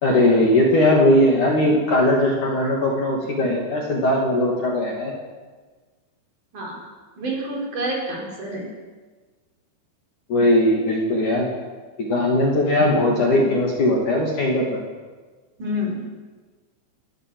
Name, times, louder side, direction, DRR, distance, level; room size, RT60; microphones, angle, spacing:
voice 1, 0.0-5.1 10.3-11.5 12.0-14.6, left 1 dB, 45° left, -2 dB, 3.5 m, -19 dB
voice 2, 7.2-8.7 15.6-16.0, equal, 40° right, -2 dB, 5.6 m, -28 dB
27.5 x 13.0 x 7.9 m, 1.4 s
omnidirectional pair, 5.8 m